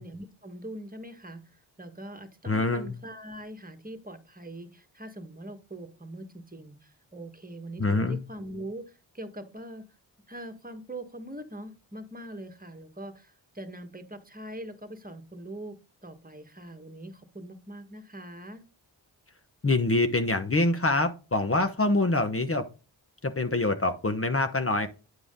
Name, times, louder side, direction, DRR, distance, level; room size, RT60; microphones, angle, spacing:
voice 1, 0.0-9.8 10.3-18.6, right 1 dB, 20° right, 7 dB, 1.6 m, -42 dB
voice 2, 2.5-2.9 7.8-8.2 19.6-22.7 23.2-24.9, left 2 dB, 30° left, 8 dB, 1.1 m, -25 dB
9.8 x 4.9 x 3.8 m, 0.32 s
cardioid pair, 45°, 45 cm